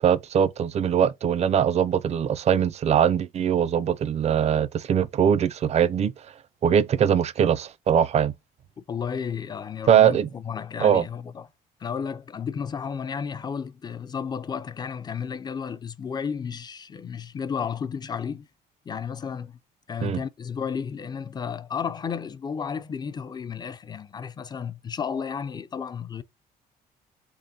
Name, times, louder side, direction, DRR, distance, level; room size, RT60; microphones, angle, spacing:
voice 1, 0.0-6.1 6.6-8.3 9.9-10.3 10.8-11.0 20.0-20.2, right 8 dB, 40° right, 0.4 m, -21 dB
voice 2, 8.9-11.5 11.8-18.5 18.9-19.5 19.9-26.2, left 6 dB, 25° left, 0.4 m, -32 dB
3.6 x 3.4 x 2.7 m
cardioid pair, 110°, 17 cm